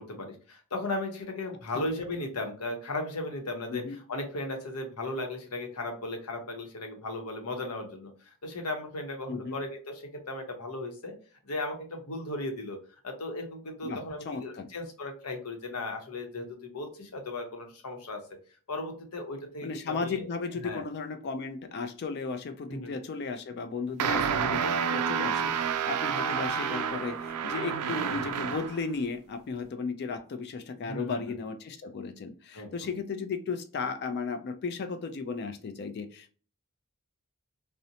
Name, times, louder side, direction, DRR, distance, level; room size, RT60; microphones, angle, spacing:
voice 1, 0.0-3.8 4.1-11.1 11.4-12.8 13.0-18.2 18.7-20.3 20.6-20.8 22.7-22.9 24.0-24.3 30.8-31.3 32.5-32.9, left 2 dB, 85° left, 0.8 m, -36 dB
voice 2, 13.8-14.7 19.6-36.3, left 4 dB, 50° left, 0.4 m, -35 dB
sound 1, 24.0-28.8, right 7 dB, 90° right, 0.3 m, -29 dB
2.7 x 2.0 x 2.6 m
head